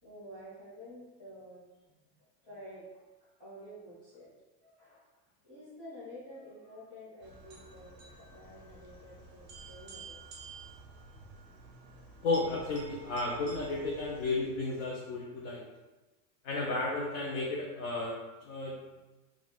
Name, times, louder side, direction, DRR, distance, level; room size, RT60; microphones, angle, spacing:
voice 1, 0.0-3.0 3.4-4.3 4.6-5.0 5.4-10.2 11.6-11.7, equal, 15° left, -11 dB, 1.2 m, -50 dB
sound 1, 7.2-14.7, right 4 dB, 45° right, 0.7 m, -50 dB
voice 2, 12.2-15.6 16.4-18.2 18.4-18.8, left 3 dB, 50° left, -4 dB, 0.6 m, -33 dB
3.5 x 2.4 x 2.3 m, 1.1 s
supercardioid pair, 165°, 49 cm